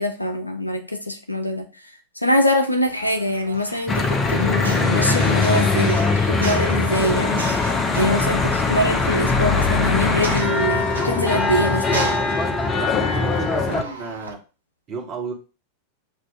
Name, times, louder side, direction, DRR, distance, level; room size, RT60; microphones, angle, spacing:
voice 1, 0.0-1.7 2.2-7.4 8.0-12.1, left 1 dB, 85° left, 0.4 m, -23 dB
sound 1, 2.8-14.3, right 3 dB, 80° right, 0.6 m, -35 dB
Church bell / Traffic noise roadway noise, 3.9-13.8, left 3 dB, 20° left, 0.6 m, -21 dB
voice 2, 12.7-14.4 14.9-15.3, right 5 dB, 30° right, 1.3 m, -32 dB
7.2 x 2.5 x 2.4 m
figure-of-eight pair, 90°, 0 cm